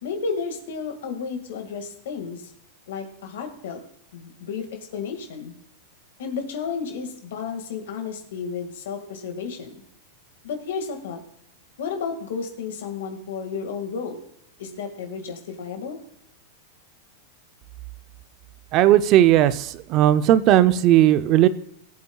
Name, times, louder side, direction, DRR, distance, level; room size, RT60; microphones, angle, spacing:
voice 1, 0.0-2.5 2.9-3.8 4.1-5.5 6.2-9.8 10.4-11.2 11.8-14.2 14.6-16.0, left 5 dB, 75° left, 4 dB, 1.9 m, -32 dB
voice 2, 18.7-21.5, right 12 dB, 35° right, 14 dB, 0.6 m, -16 dB
18.5 x 8.3 x 2.3 m, 0.73 s
supercardioid pair, 155°, 0 cm